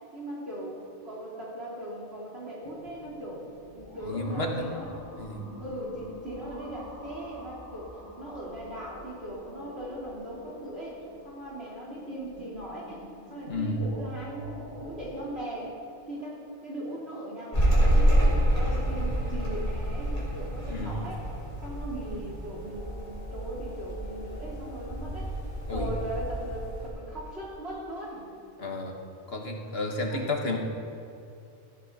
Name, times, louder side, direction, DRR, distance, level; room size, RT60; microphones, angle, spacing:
voice 1, 0.1-3.5 3.7-4.9 5.6-15.7 16.1-21.3 21.6-25.3 25.7-28.3 30.1-30.2, right 1 dB, 60° right, -6 dB, 4.2 m, -39 dB
sound 1, 2.6-15.1, left 1 dB, 10° right, 3.0 m, -47 dB
voice 2, 4.0-4.7 5.2-5.4 13.5-13.8 20.7-21.1 25.7-26.0 28.6-28.9 29.3-30.6, left 2 dB, 60° left, 2 dB, 1.6 m, -32 dB
sound 2, 17.5-26.9, right 1 dB, 30° left, 4.0 m, -28 dB
16.5 x 15.0 x 4.2 m, 2.6 s
omnidirectional pair, 1.2 m